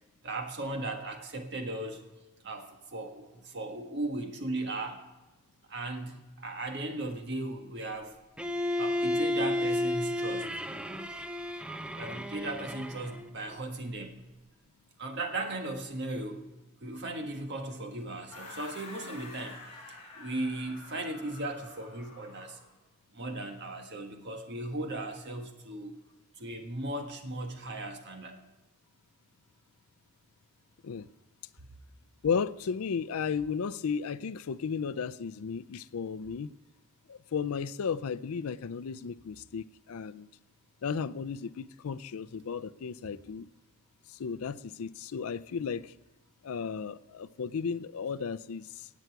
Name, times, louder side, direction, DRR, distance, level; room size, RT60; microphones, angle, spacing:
voice 1, 0.2-2.0 2.4-5.0 5.7-8.2 8.8-10.5 11.9-14.2 15.0-16.5 16.8-19.6 19.9-22.6 23.1-25.9 26.4-28.4, right 2 dB, 50° right, 1.5 m, -37 dB
Bowed string instrument, 8.4-13.3, left 1 dB, 5° right, 0.4 m, -32 dB
sound 1, 18.3-22.7, left 2 dB, 30° left, 4.5 m, -48 dB
voice 2, 32.2-36.5 37.1-40.3 40.8-43.5 44.1-45.9 46.4-48.9, left 6 dB, 70° left, 0.4 m, -34 dB
18.0 x 8.0 x 4.7 m
head